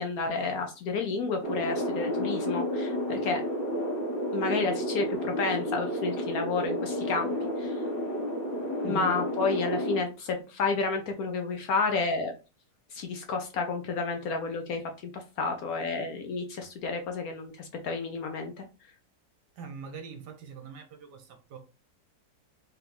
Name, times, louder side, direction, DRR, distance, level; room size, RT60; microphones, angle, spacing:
voice 1, 0.0-3.5 4.3-7.8 8.8-12.3 12.9-18.7, left 4 dB, 70° left, 0.9 m, -31 dB
sound 1, 1.4-10.0, equal, 85° left, 1.8 m, -31 dB
voice 2, 19.6-21.6, right 6 dB, 70° right, 1.4 m, -42 dB
3.7 x 3.5 x 2.8 m
omnidirectional pair, 1.9 m